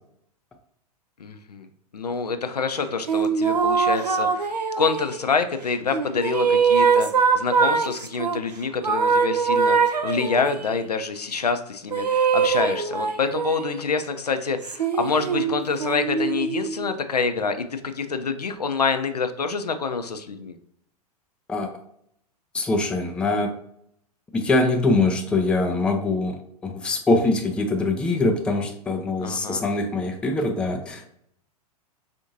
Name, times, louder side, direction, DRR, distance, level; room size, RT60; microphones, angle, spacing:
voice 1, 1.2-1.7 1.9-20.6 29.2-29.6, left 5 dB, 80° left, 8 dB, 0.4 m, -27 dB
sound 1, 3.1-5.3 5.9-8.4 8.8-10.7 11.9-13.8 14.6-16.9, right 5 dB, 85° right, 0.4 m, -22 dB
voice 2, 22.5-23.5 24.3-31.1, left 2 dB, 5° left, 4 dB, 0.3 m, -23 dB
4.2 x 2.6 x 2.6 m, 0.72 s
figure-of-eight pair, 100°, 20 cm